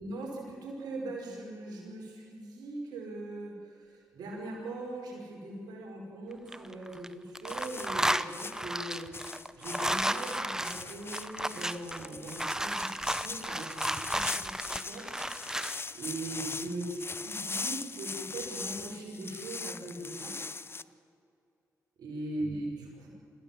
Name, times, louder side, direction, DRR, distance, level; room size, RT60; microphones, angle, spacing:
voice 1, 0.0-9.1 9.5-15.1 15.9-20.4 22.0-23.1, right 2 dB, 85° right, 0 dB, 5.6 m, -40 dB
sound 1, 6.3-7.1 7.3-15.8, right 1 dB, 10° right, 0.9 m, -33 dB
sound 2, 7.5-20.8, left 4 dB, 35° left, 0.8 m, -41 dB
25.5 x 15.5 x 7.7 m, 2.3 s
supercardioid pair, 45°, 7 cm